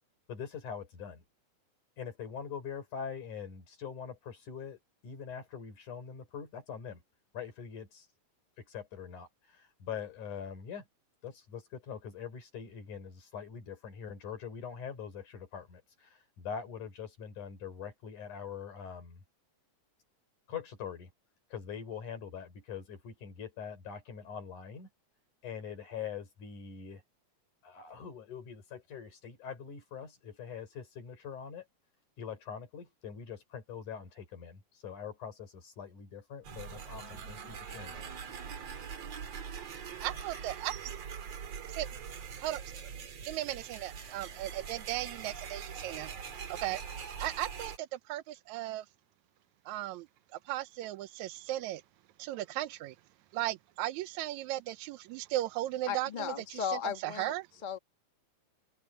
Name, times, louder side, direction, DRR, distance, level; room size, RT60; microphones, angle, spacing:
voice 1, 0.3-1.2 2.0-7.0 7.3-8.1 8.6-10.9 11.2-19.2 20.5-21.1 21.5-24.9 25.4-27.0 27.6-31.7 32.2-38.0, left 7 dB, 85° left, 5.7 m, -43 dB
sound 1, 36.4-47.8, right 7 dB, 60° right, 3.2 m, -43 dB
voice 2, 40.0-40.8 41.8-41.9 42.4-42.6 43.3-46.2 46.5-46.8 47.2-48.9 49.7-51.8 52.2-53.0 53.3-57.5, right 15 dB, 80° right, 1.9 m, -36 dB
voice 3, 55.9-57.3 57.6-57.8, left 7 dB, 30° left, 0.8 m, -35 dB
open air
omnidirectional pair, 3.4 m